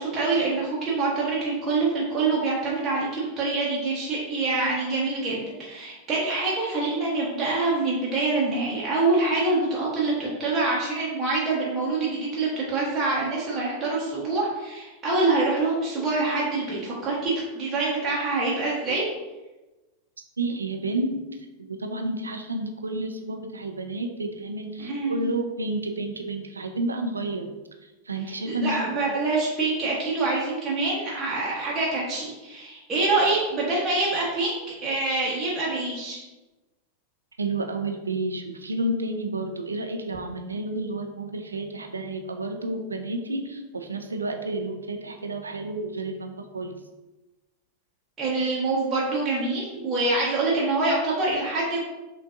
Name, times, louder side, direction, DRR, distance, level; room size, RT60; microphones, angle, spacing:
voice 1, 0.0-19.0 24.8-25.2 28.3-36.2 48.2-51.8, right 3 dB, 20° right, -7 dB, 1.0 m, -25 dB
voice 2, 20.4-27.5 28.1-28.9 37.4-46.8, right 2 dB, 75° right, 5 dB, 0.4 m, -30 dB
5.7 x 2.5 x 2.5 m, 1.1 s
figure-of-eight pair, 90°, 0 cm